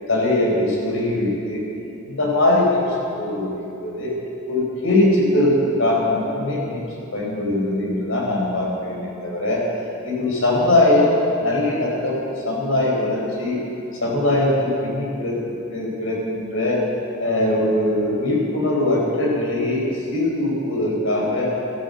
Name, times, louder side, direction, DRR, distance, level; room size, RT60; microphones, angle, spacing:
voice 1, 0.1-1.6 2.0-4.1 4.5-6.8 7.1-9.6 10.0-13.6 14.0-15.3 15.7-16.8 17.2-21.5, left 1 dB, 90° left, -3 dB, 4.8 m, -21 dB
13.5 x 11.5 x 8.0 m, 2.8 s
head